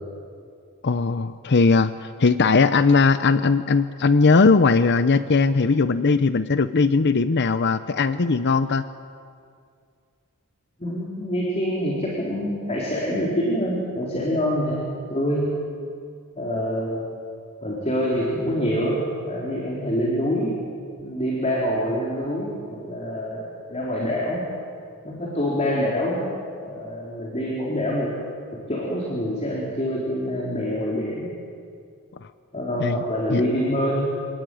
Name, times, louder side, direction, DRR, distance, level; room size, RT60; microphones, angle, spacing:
voice 1, 0.8-8.8 32.8-33.0 33.3-33.4, left 4 dB, 50° left, 12 dB, 0.7 m, -19 dB
voice 2, 10.8-14.8 15.1-15.5 16.4-17.0 17.6-20.5 21.0-24.4 25.0-26.3 26.6-28.1 28.5-31.3 32.5-34.1, equal, 30° left, -3 dB, 4.1 m, -25 dB
27.0 x 20.0 x 9.3 m, 2.3 s
head